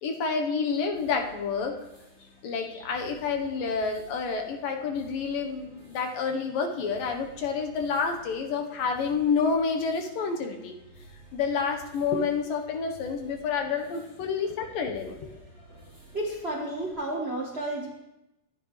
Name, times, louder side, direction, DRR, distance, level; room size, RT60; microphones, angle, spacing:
voice 1, 0.0-1.8 2.4-10.8 11.3-15.3, left 5 dB, 70° left, 4 dB, 2.8 m, -29 dB
sound 1, 0.9-16.9, right 1 dB, 25° left, 6.9 m, -53 dB
voice 2, 16.1-17.9, right 1 dB, 80° right, -2 dB, 0.5 m, -32 dB
23.0 x 10.0 x 3.3 m, 0.93 s
omnidirectional pair, 4.2 m